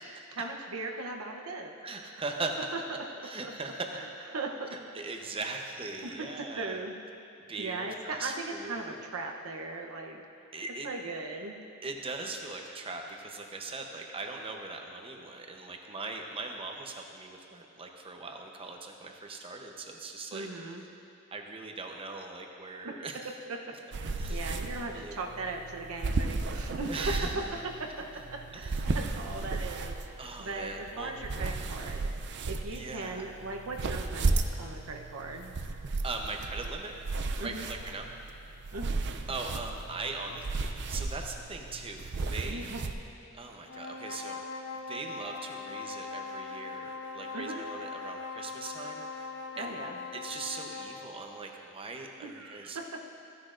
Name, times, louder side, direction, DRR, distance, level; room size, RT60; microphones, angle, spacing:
voice 1, 0.0-2.1 3.4-3.5 4.3-4.7 6.0-6.9 7.6-10.2 10.8-11.6 20.3-20.9 22.8-22.9 23.5-23.6 24.0-27.4 27.8-28.1 28.3-32.1 32.5-35.5 37.4-37.7 38.7-38.9 42.4-42.9 47.3-47.6 49.5-50.0 52.2-52.8, right 3 dB, 85° right, 2 dB, 0.8 m, -38 dB
voice 2, 1.8-2.7 3.2-3.9 4.7-6.8 7.4-9.0 10.5-10.9 11.8-20.5 21.3-23.2 24.2-24.5 24.9-25.3 26.9-27.5 28.5-28.9 30.2-31.1 32.7-33.2 36.0-37.0 37.4-38.1 39.3-42.6 43.3-44.4 44.9-49.3 49.6-49.8 50.1-52.8, right 3 dB, 25° right, 2 dB, 0.8 m, -40 dB
sound 1, 23.9-42.9, right 3 dB, 55° right, 0.5 m, -35 dB
sound 2, 43.6-51.0, left 4 dB, 60° left, 0.9 m, -41 dB
15.0 x 10.0 x 2.5 m, 2.8 s
head